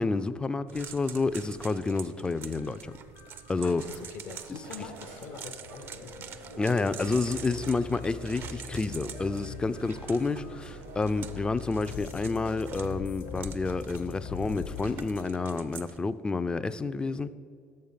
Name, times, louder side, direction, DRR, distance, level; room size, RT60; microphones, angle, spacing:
voice 1, 0.0-2.9 3.5-3.8 6.6-17.4, left 3 dB, 15° left, 13 dB, 0.3 m, -29 dB
sound 1, 0.7-16.0, right 8 dB, 45° right, 0.5 m, -46 dB
sound 2, 2.3-15.3, left 6 dB, 80° left, 1.1 m, -43 dB
voice 2, 3.6-6.3, left 6 dB, 60° left, 8 dB, 0.6 m, -45 dB
sound 3, 4.6-11.3, right 3 dB, 80° right, 1.3 m, -48 dB
6.6 x 6.5 x 5.6 m, 2.3 s
hypercardioid pair, 80°, 5 cm